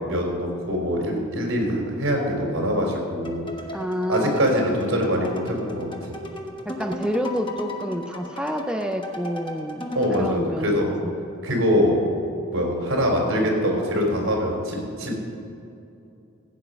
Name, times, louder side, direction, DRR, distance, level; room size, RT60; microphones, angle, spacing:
voice 1, 0.0-3.5 4.1-6.1 10.0-10.9 11.4-11.9 12.5-15.1, equal, 85° right, 0 dB, 3.9 m, -23 dB
sound 1, 3.2-10.4, left 1 dB, 25° left, 1.2 m, -36 dB
voice 2, 3.7-5.0 6.7-11.1, equal, 5° right, 5 dB, 0.5 m, -29 dB
15.5 x 9.0 x 5.5 m, 2.6 s
head